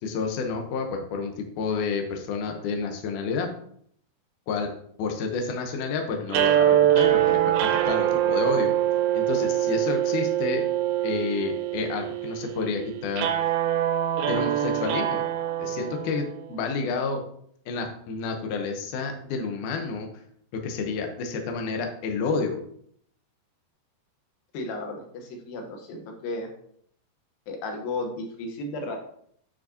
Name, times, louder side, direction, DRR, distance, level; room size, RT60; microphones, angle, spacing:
voice 1, 0.0-3.5 4.5-4.7 5.0-8.7 9.1-10.6 11.0-13.3 14.3-15.3 15.6-17.2 17.6-20.1 20.5-22.6, left 4 dB, 90° left, 3 dB, 1.7 m, -30 dB
sound 1, 6.3-16.5, right 12 dB, 80° right, 2.3 m, -24 dB
voice 2, 24.5-26.5 27.5-29.0, left 2 dB, 70° left, 3 dB, 2.4 m, -34 dB
8.8 x 6.1 x 2.8 m, 0.65 s
omnidirectional pair, 5.0 m